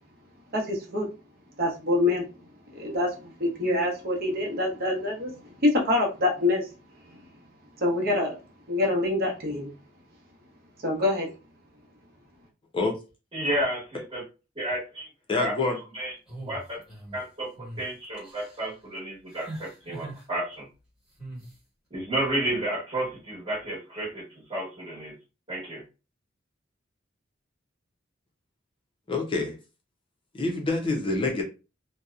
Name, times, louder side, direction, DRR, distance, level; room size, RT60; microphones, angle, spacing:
voice 1, 0.5-1.1 1.6-2.2 2.7-6.7 7.8-8.4 8.7-9.7 10.8-11.3, left 2 dB, 55° right, 0.8 m, -25 dB
voice 2, 13.3-14.2 14.5-15.1 15.4-15.5 15.9-16.1 16.5-16.8 17.1-20.7 21.9-25.2 25.5-25.8, right 1 dB, 30° right, 1.0 m, -31 dB
voice 3, 15.3-15.8 29.1-29.5 30.3-31.4, left 3 dB, 25° left, 0.5 m, -26 dB
sound 1, 16.3-17.2 17.6-17.8 18.2-18.7 19.3-20.2 21.2-21.5, right 1 dB, 5° right, 1.2 m, -41 dB
2.7 x 2.1 x 2.3 m
head